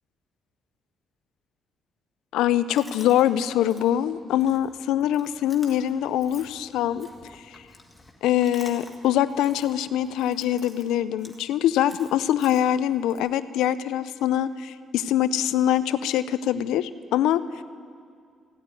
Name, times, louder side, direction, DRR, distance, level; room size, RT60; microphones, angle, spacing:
voice 1, 2.3-7.1 8.2-17.6, left 11 dB, 90° left, 15 dB, 0.5 m, -23 dB
Chewing mastication, 2.7-13.2, left 2 dB, 20° left, 1.9 m, -51 dB
15.5 x 9.0 x 9.5 m, 2.2 s
cardioid pair, 90°, 0 cm